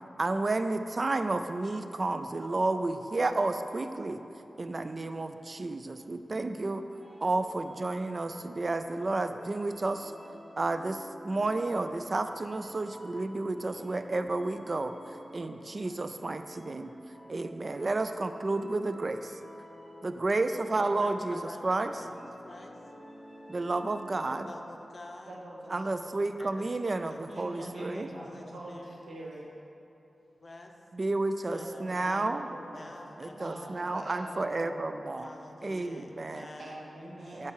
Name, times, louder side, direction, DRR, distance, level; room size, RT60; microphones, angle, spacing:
voice 1, 0.2-4.2 4.6-6.8 7.2-10.1 10.6-14.9 15.3-16.9 17.3-19.4 20.0-21.9 23.5-24.5 25.7-28.1 30.9-32.5 33.2-35.3 35.6-36.5 37.3-37.5, right 2 dB, 45° right, 9 dB, 0.3 m, -31 dB
sound 1, 6.9-24.6, equal, 5° right, 1.3 m, -51 dB
voice 2, 20.8-22.8 24.2-25.4 26.4-28.9 30.4-30.7 31.5-34.2 35.2-36.8, left 2 dB, 50° left, 3 dB, 0.6 m, -49 dB
voice 3, 25.3-25.9 27.3-29.5 31.5-32.9 33.3-34.8 36.4-37.5, right 1 dB, 70° right, -4 dB, 1.0 m, -44 dB
5.7 x 4.7 x 4.6 m, 2.9 s
cardioid pair, 60°, 0 cm